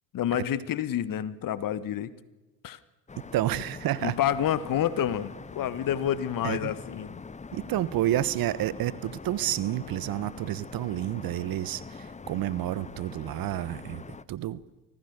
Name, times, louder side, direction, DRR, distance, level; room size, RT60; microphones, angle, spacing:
voice 1, 0.1-2.1 2.6-2.8 4.0-7.2, left 10 dB, 50° left, 16 dB, 1.5 m, -28 dB
sound 1, 3.1-14.2, left 4 dB, 15° left, 1.0 m, -44 dB
voice 2, 3.3-4.2 6.4-6.7 7.5-14.0 14.3-14.6, right 13 dB, 55° right, 18 dB, 1.3 m, -30 dB
25.0 x 18.0 x 6.9 m, 1.1 s
hypercardioid pair, 65°, 43 cm